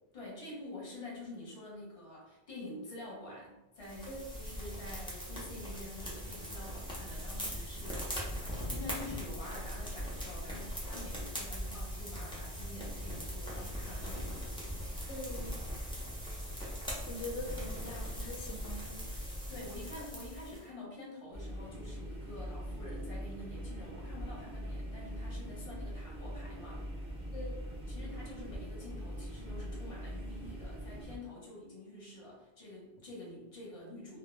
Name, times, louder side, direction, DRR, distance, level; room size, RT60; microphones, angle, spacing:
voice 1, 0.1-14.5 19.5-26.8 27.9-34.2, left 1 dB, 35° left, -5 dB, 0.8 m, -47 dB
sound 1, 3.8-20.6, equal, 10° left, 0.3 m, -40 dB
voice 2, 15.1-15.6 17.0-19.2 27.3-27.6, left 2 dB, 80° left, 1 dB, 0.9 m, -43 dB
sound 2, 21.3-31.2, equal, 40° right, 0.6 m, -42 dB
2.2 x 2.1 x 3.1 m, 0.97 s
omnidirectional pair, 1.2 m